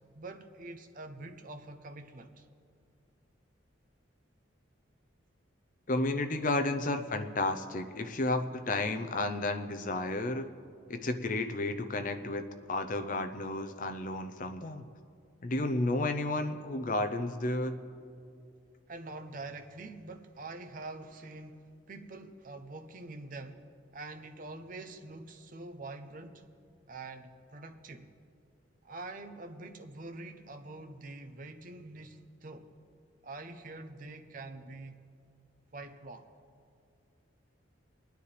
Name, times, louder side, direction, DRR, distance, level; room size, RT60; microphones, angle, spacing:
voice 1, 0.1-2.5 18.9-23.7 23.9-26.5 26.9-28.1 28.8-32.7 33.2-35.0 35.7-36.3, right 2 dB, 45° right, 0.7 m, -45 dB
voice 2, 5.9-10.5 10.9-14.8 15.4-17.8, left 2 dB, 40° left, 0.7 m, -32 dB
25.5 x 9.8 x 3.3 m
head